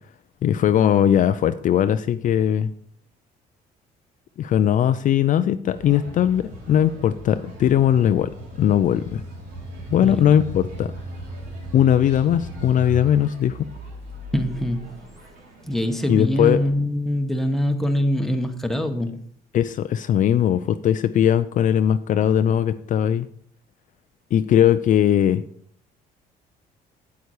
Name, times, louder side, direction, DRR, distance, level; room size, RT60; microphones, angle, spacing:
voice 1, 0.4-2.7 4.4-8.3 8.6-9.2 9.9-10.9 11.7-13.6 16.1-16.6 19.5-23.3 24.3-25.4, left 10 dB, 50° left, 11 dB, 0.5 m, -19 dB
sound 1, 5.7-16.7, right 1 dB, 75° right, 3.6 m, -38 dB
voice 2, 14.3-15.1 15.6-19.2, left 1 dB, ahead, 5 dB, 1.1 m, -24 dB
8.4 x 8.2 x 4.7 m, 0.63 s
cardioid pair, 110°, 17 cm